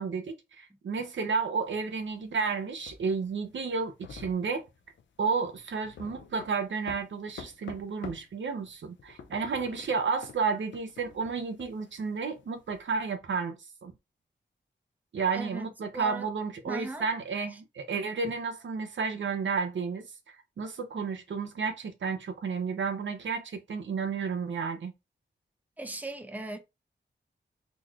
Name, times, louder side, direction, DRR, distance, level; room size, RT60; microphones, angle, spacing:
voice 1, 0.0-4.6 5.2-13.6 13.8-13.9 15.1-24.9, right 5 dB, 85° right, 0.8 m, -32 dB
sound 1, 1.7-8.4 8.7-12.8, left 6 dB, 90° left, 0.5 m, -47 dB
voice 2, 15.3-15.7 15.9-16.3 16.7-17.1 25.8-26.6, right 2 dB, 10° right, 0.7 m, -38 dB
3.8 x 3.0 x 2.4 m
wide cardioid pair, 70°, 19 cm